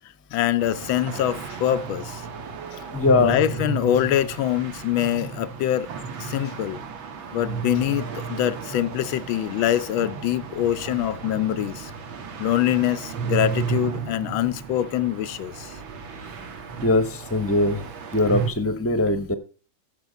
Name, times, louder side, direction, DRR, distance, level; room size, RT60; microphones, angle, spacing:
voice 1, 0.3-2.2 3.2-5.9 6.2-6.8 7.3-11.9 12.4-15.7, left 12 dB, 85° left, 1.5 m, -24 dB
sound 1, 0.6-18.5, right 6 dB, 85° right, 2.2 m, -33 dB
voice 2, 2.9-3.4 16.8-17.8 18.1-19.3, left 2 dB, 10° left, 0.7 m, -21 dB
14.0 x 5.2 x 5.2 m
omnidirectional pair, 2.1 m